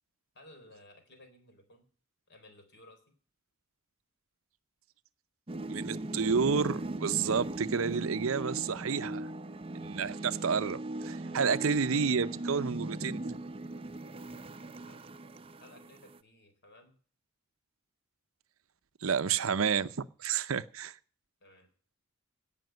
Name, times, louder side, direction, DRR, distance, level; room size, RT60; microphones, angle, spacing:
voice 1, 0.3-1.9 2.3-3.1 11.3-11.5 14.8-15.0 15.6-17.0 21.4-21.7, left 1 dB, 55° left, 4.1 m, -57 dB
sound 1, 5.5-16.2, right 2 dB, 25° right, 0.6 m, -39 dB
voice 2, 5.7-9.3 9.7-13.2 19.0-20.9, right 6 dB, 70° right, 0.6 m, -30 dB
17.0 x 6.0 x 9.0 m
head